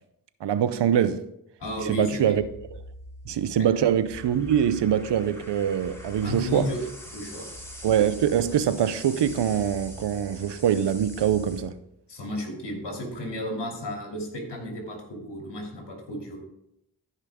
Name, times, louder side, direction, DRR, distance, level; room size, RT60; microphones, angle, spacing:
voice 1, 0.4-1.2 1.8-2.4 3.3-6.7 7.8-11.7, right 9 dB, 90° right, 0.6 m, -24 dB
voice 2, 1.6-2.3 3.5-3.7 6.2-6.8 7.1-7.5 12.1-16.4, left 1 dB, 80° left, 2.9 m, -33 dB
sound 1, 1.6-11.6, equal, 5° left, 3.3 m, -43 dB
13.5 x 5.8 x 3.6 m
cardioid pair, 40°, 40 cm